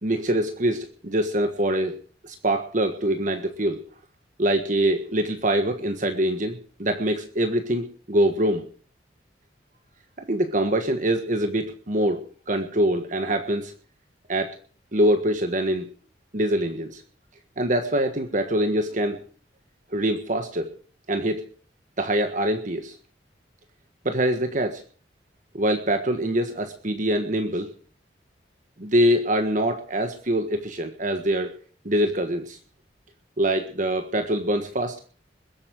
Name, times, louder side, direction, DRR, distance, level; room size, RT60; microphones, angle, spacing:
voice 1, 0.0-2.0 2.2-3.8 4.4-8.6 10.2-13.7 14.3-14.5 14.9-15.9 16.3-17.0 17.6-19.2 19.9-20.7 21.1-21.4 22.0-22.9 24.0-24.8 25.5-27.7 28.8-31.5 31.8-32.6 33.4-35.0, right 1 dB, 45° right, 6 dB, 1.5 m, -24 dB
21.5 x 8.7 x 6.1 m, 0.42 s
head